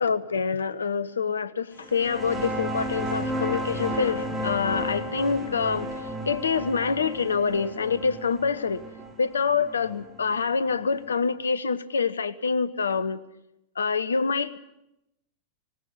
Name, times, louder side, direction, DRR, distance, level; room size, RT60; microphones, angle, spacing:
voice 1, 0.0-5.9 6.3-8.8 9.2-13.2 13.8-14.6, left 5 dB, 70° left, 16 dB, 1.0 m, -26 dB
sound 1, 1.8-11.1, equal, 10° right, 6.5 m, -33 dB
18.5 x 18.5 x 9.7 m, 0.85 s
figure-of-eight pair, 90°, 0 cm